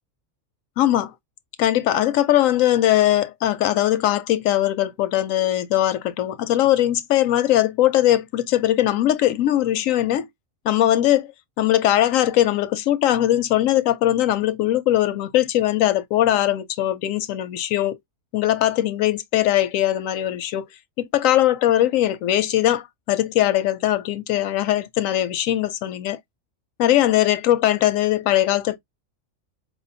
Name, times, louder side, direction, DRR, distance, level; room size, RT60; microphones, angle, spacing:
voice 1, 0.8-1.1 1.6-10.3 10.6-11.3 11.6-18.0 18.3-20.6 21.0-26.2 26.8-28.8, left 13 dB, 90° left, 1.0 m, -20 dB
4.9 x 2.4 x 2.6 m
omnidirectional pair, 1.3 m